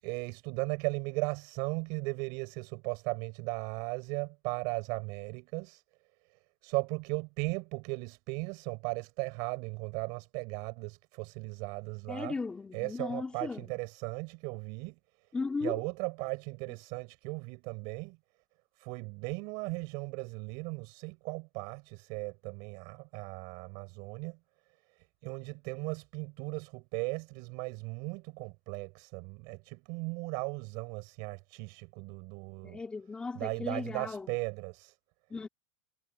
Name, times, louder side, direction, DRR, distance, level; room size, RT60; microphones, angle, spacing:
voice 1, 0.0-5.8 6.3-12.4 12.7-15.3 15.6-18.2 18.8-24.4 24.9-32.8 33.4-35.0, right 30 dB, 50° right, 5.2 m, -37 dB
voice 2, 12.1-13.7 15.3-15.8 32.6-34.3 35.3-35.5, left 4 dB, 10° left, 3.3 m, -36 dB
supercardioid pair, 155°, 9 cm